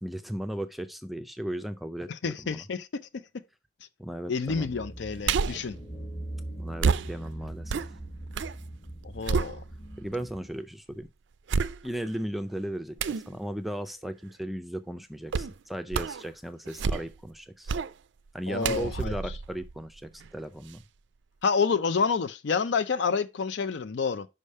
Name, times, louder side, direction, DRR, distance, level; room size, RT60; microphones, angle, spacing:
voice 1, 0.0-2.6 4.0-4.7 6.6-7.8 10.0-11.1 11.8-17.7 18.3-20.8, right 1 dB, ahead, 0.4 m, -36 dB
voice 2, 2.2-2.9 4.3-5.8 9.1-9.6 18.5-19.1 21.4-24.3, left 5 dB, 65° left, 0.5 m, -28 dB
sound 1, 4.5-10.5, right 1 dB, 25° left, 1.1 m, -41 dB
real punches and slaps, 5.2-5.7 6.8-8.6 8.9-10.0 10.6-10.7 11.5-12.2 13.0-13.3 15.3-15.6 15.9-16.3 16.7-17.3 17.7-17.9 18.6-20.3 20.7-20.8, right 5 dB, 70° right, 0.4 m, -29 dB
5.4 x 5.0 x 5.4 m
head